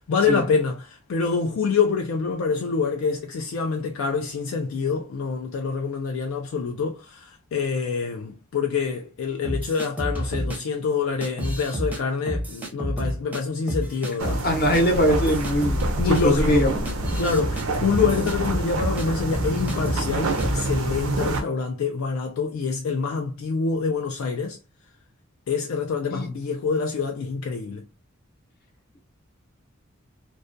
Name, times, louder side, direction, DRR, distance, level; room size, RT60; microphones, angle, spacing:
voice 1, 0.1-14.4 16.0-16.7 17.2-24.6 25.5-27.9, left 5 dB, 70° left, 0.3 m, -26 dB
sound 1, 9.4-10.6 11.2-12.0 12.3-13.4 13.7-14.4 14.7-14.8 15.1-19.1 19.3-20.1 20.4-20.6, equal, 10° right, 0.5 m, -29 dB
sound 2, 14.2-21.4, right 2 dB, 85° right, 0.5 m, -27 dB
voice 2, 14.4-15.8 16.0-16.8 26.1-26.3, equal, 50° left, 0.8 m, -21 dB
2.3 x 2.1 x 2.5 m
head